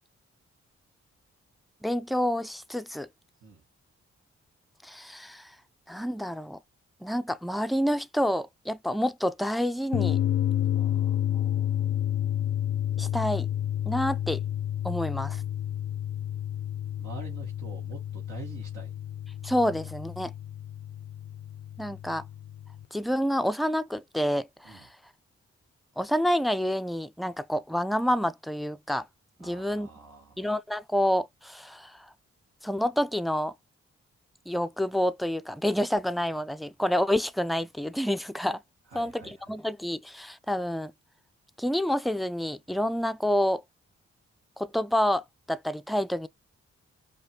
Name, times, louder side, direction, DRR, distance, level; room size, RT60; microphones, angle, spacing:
voice 1, 1.8-3.1 4.8-5.5 5.9-6.6 7.0-10.2 13.0-13.5 13.9-14.4 14.8-15.4 19.4-20.3 21.8-22.2 22.9-24.9 26.0-29.1 29.4-29.9 30.4-32.1 32.6-33.5 34.5-38.6 38.9-40.9 41.6-43.6 44.6-46.3, equal, ahead, 0.4 m, -28 dB
sound 1, 9.9-22.8, left 11 dB, 55° left, 0.5 m, -30 dB
voice 2, 10.7-12.4 17.0-18.9 24.6-24.9 29.4-30.5 38.9-39.5, right 4 dB, 80° right, 1.4 m, -47 dB
5.3 x 2.3 x 2.8 m
supercardioid pair, 45°, 30 cm